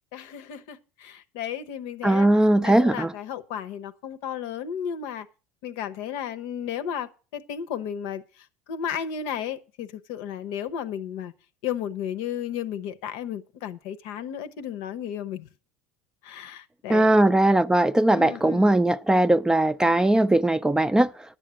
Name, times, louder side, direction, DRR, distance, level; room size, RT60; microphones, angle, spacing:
voice 1, 0.1-2.3 2.6-5.3 5.6-8.2 8.7-11.3 11.6-15.5 16.2-17.2 18.1-18.8, left 9 dB, 65° left, 0.8 m, -33 dB
voice 2, 2.0-3.1 16.9-21.1, right 1 dB, 10° right, 0.5 m, -19 dB
10.5 x 7.6 x 6.2 m
hypercardioid pair, 70°, 8 cm